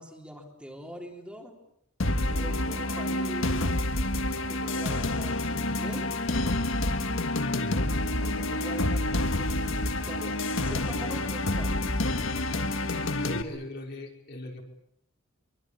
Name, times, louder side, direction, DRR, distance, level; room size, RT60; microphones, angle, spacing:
voice 1, 0.0-1.5 2.2-3.8 4.5-6.1 8.2-11.8, equal, 5° right, 0 dB, 3.6 m, -43 dB
sound 1, 2.0-13.4, left 2 dB, 65° left, 1.7 m, -28 dB
voice 2, 7.6-7.9 12.9-14.6, left 1 dB, 50° left, 1 dB, 5.1 m, -40 dB
25.0 x 24.5 x 8.5 m, 0.74 s
head